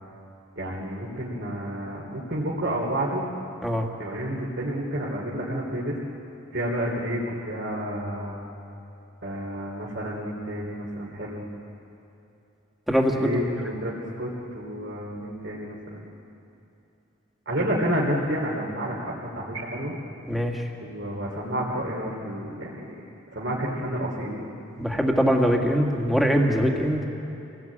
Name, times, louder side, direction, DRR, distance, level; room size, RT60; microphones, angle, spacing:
voice 1, 0.6-3.2 4.0-6.0 6.5-8.3 9.2-11.4 13.1-16.1 17.5-19.9 20.8-22.9 23.3-24.4, equal, 55° right, -5 dB, 3.5 m, -30 dB
voice 2, 12.9-13.3 20.3-20.7 24.7-27.1, equal, ahead, 0 dB, 2.1 m, -22 dB
28.0 x 19.0 x 8.7 m, 2.8 s
head